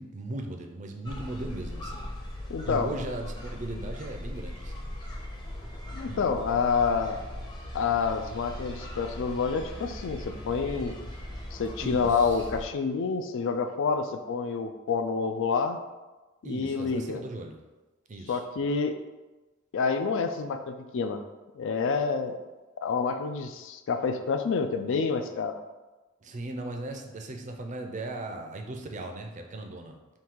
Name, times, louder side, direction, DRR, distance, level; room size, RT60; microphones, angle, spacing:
voice 1, 0.0-2.1 2.7-4.9 6.1-6.3 11.8-12.5 16.4-17.6 18.1-18.4 26.2-30.0, right 2 dB, 35° right, 4 dB, 0.5 m, -37 dB
sound 1, 1.0-12.7, left 1 dB, 20° left, 0.7 m, -39 dB
voice 2, 2.5-2.9 5.9-7.2 7.7-11.0 11.5-15.8 16.4-17.2 18.3-19.0 19.7-21.2 21.6-22.4 22.8-25.6, left 5 dB, 65° left, 8 dB, 0.4 m, -28 dB
3.7 x 2.7 x 4.5 m, 1.1 s
head